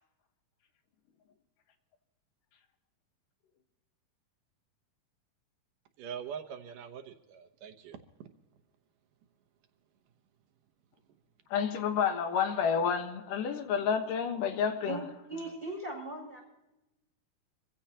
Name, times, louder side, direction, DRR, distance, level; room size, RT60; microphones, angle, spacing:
voice 1, 6.0-8.3, right 7 dB, 70° right, 6 dB, 2.5 m, -43 dB
voice 2, 11.5-15.0, left 7 dB, 65° left, 7 dB, 2.8 m, -29 dB
voice 3, 15.3-16.4, right 2 dB, 5° left, 0 dB, 6.3 m, -38 dB
26.5 x 15.5 x 2.9 m, 0.96 s
omnidirectional pair, 4.3 m